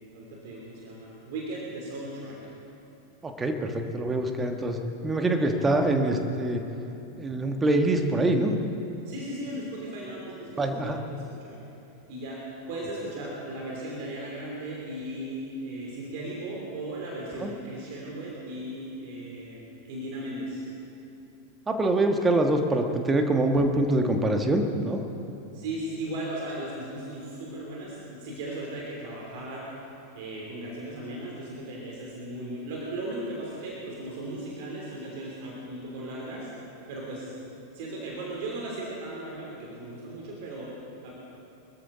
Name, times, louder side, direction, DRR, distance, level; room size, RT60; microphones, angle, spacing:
voice 1, 0.1-2.4 9.0-11.6 12.1-20.6 25.5-29.8 30.1-36.5 36.9-40.7 41.0-41.1, right 1 dB, 50° right, -3 dB, 3.2 m, -37 dB
voice 2, 3.2-4.8 5.0-6.6 7.2-8.6 10.6-11.0 17.4-17.5 21.7-25.0, right 2 dB, 15° right, 5 dB, 1.4 m, -24 dB
24.0 x 13.5 x 4.0 m, 2.9 s
figure-of-eight pair, 90°, 0 cm